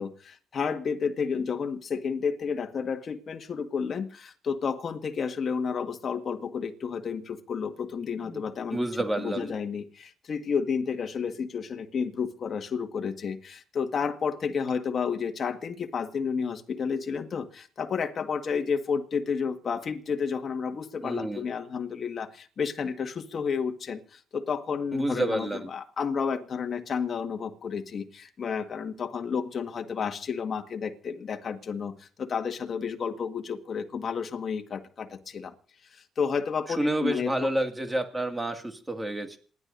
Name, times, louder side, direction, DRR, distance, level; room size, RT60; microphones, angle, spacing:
voice 1, 0.0-8.8 9.1-35.5 35.9-37.5, left 6 dB, 50° left, 1.7 m, -31 dB
voice 2, 8.7-9.5 21.0-21.4 24.9-25.7 36.8-39.4, right 1 dB, 15° right, 2.2 m, -29 dB
27.5 x 11.0 x 2.7 m
cardioid pair, 90°, 0 cm